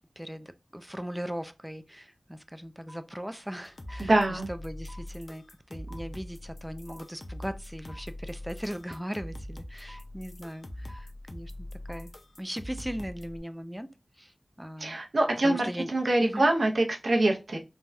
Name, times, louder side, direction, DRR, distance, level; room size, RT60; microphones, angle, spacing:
voice 1, 0.2-12.1 12.4-13.9 14.2-15.0 15.4-15.9 16.2-16.5, equal, 5° right, 0.3 m, -39 dB
sound 1, 2.9-3.0 3.9-4.0 4.9-5.0 5.9-6.0 6.9-7.0 7.9-8.0 8.9-9.0 9.9-10.0 10.9-11.0 11.9-12.0, equal, 30° right, 0.8 m, -49 dB
sound 2, 3.6-13.4, left 1 dB, 60° left, 0.5 m, -43 dB
voice 2, 4.1-4.5 14.8-17.6, right 2 dB, 80° right, 0.6 m, -25 dB
3.3 x 2.2 x 2.5 m
wide cardioid pair, 60°, 0 cm